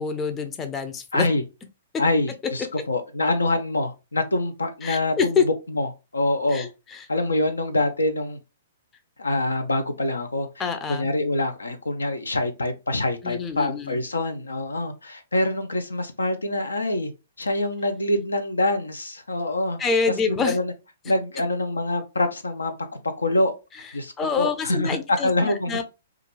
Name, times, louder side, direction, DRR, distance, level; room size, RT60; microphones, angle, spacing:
voice 1, 0.0-1.3 4.8-5.4 6.5-7.1 10.6-11.1 13.2-14.0 19.8-20.6 24.2-25.8, left 5 dB, 20° left, 0.4 m, -26 dB
voice 2, 1.1-1.4 2.0-6.7 7.1-8.4 9.2-17.1 17.4-19.8 20.3-20.7 21.0-22.7 23.2-23.5 23.9-25.8, left 2 dB, 90° left, 0.5 m, -25 dB
2.4 x 2.2 x 3.0 m
hypercardioid pair, 125°, 0 cm